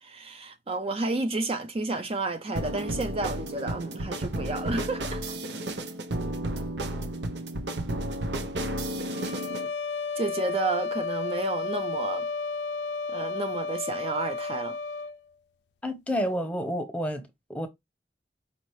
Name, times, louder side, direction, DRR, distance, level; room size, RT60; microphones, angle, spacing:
voice 1, 0.0-5.4 10.2-12.3 13.1-14.8, right 3 dB, 35° right, 0.5 m, -31 dB
sound 1, 2.6-9.7, right 1 dB, 80° right, 0.8 m, -32 dB
sound 2, 9.1-15.2, left 4 dB, 80° left, 0.5 m, -32 dB
voice 2, 15.8-17.7, equal, 10° left, 0.8 m, -30 dB
5.2 x 2.8 x 3.1 m
head